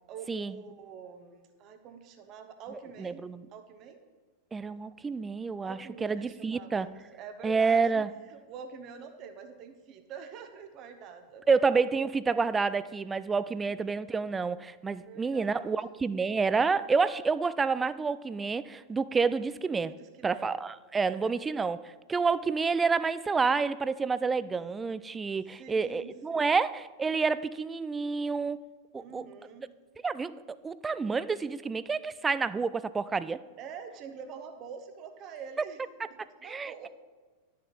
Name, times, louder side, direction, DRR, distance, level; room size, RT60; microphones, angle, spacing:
voice 1, 0.1-4.1 5.6-11.4 13.7-14.2 15.0-15.8 19.9-20.6 21.0-21.4 25.6-26.5 29.0-29.7 33.6-36.9, right 6 dB, 35° right, 7 dB, 1.0 m, -46 dB
voice 2, 3.0-3.4 4.5-6.9 7.4-8.1 11.5-19.9 20.2-28.6 28.9-29.3 30.0-33.4 36.4-36.9, right 4 dB, 15° right, 16 dB, 0.3 m, -29 dB
11.5 x 6.5 x 4.0 m, 1.3 s
figure-of-eight pair, 90°, 0 cm